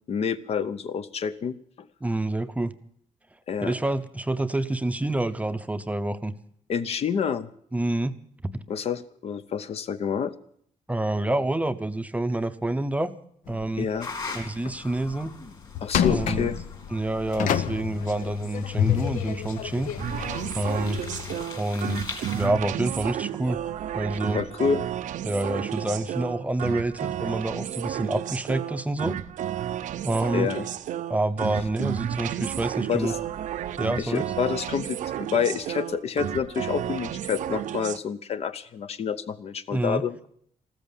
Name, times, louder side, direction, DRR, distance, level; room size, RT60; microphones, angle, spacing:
voice 1, 0.1-1.5 3.5-3.8 6.7-7.5 8.7-10.3 13.8-14.5 15.8-16.6 24.3-24.8 30.3-30.6 32.9-33.1 34.0-40.3, left 7 dB, 50° left, 12 dB, 0.8 m, -28 dB
voice 2, 2.0-2.7 3.6-6.3 7.7-8.1 10.9-13.1 13.5-13.9 14.3-15.3 16.1-16.5 16.9-19.9 20.5-21.0 21.5-23.6 23.9-24.4 25.2-29.2 30.0-30.5 31.1-33.2 33.8-34.3 39.7-40.0, right 2 dB, 10° right, 9 dB, 0.7 m, -27 dB
sound 1, 13.5-14.0 14.4-14.5 15.0-15.3 15.7-21.4, left 9 dB, 80° left, 0.8 m, -29 dB
sound 2, 14.0-22.5, left 4 dB, 35° left, 3.0 m, -42 dB
sound 3, 20.0-38.0, right 11 dB, 75° right, 0.6 m, -32 dB
14.5 x 13.5 x 7.2 m, 0.64 s
cardioid pair, 140°, 13 cm